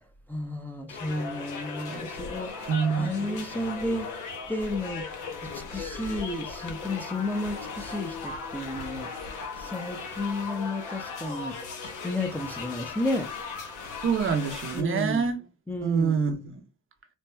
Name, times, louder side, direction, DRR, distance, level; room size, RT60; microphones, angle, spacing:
voice 1, 0.3-4.1 4.5-5.0 5.5-9.1 9.6-11.5 12.0-13.3 14.7-15.3 15.7-16.2, left 1 dB, 5° left, 0.6 m, -32 dB
sound 1, 0.9-14.8, left 4 dB, 85° left, 0.9 m, -37 dB
voice 2, 2.7-3.3 14.0-15.4 15.8-16.6, right 6 dB, 45° right, 0.7 m, -26 dB
4.3 x 2.2 x 2.2 m
cardioid pair, 90°, 30 cm